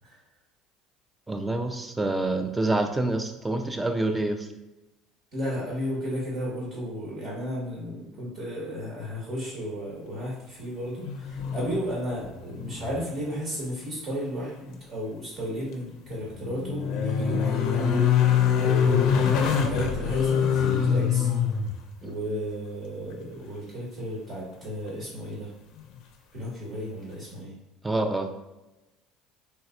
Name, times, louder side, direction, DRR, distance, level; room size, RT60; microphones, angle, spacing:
voice 1, 1.3-4.5 27.8-28.3, right 2 dB, 15° right, 6 dB, 0.4 m, -27 dB
voice 2, 5.3-18.1 18.5-21.3 22.0-25.5 26.3-27.5, equal, 50° right, -6 dB, 1.4 m, -34 dB
sound 1, 11.0-12.0 12.2-13.0 13.3-13.4 15.9-21.7 24.6-24.7, left 7 dB, 65° left, 0.4 m, -24 dB
3.3 x 2.9 x 2.4 m, 1.0 s
supercardioid pair, 90°, 0 cm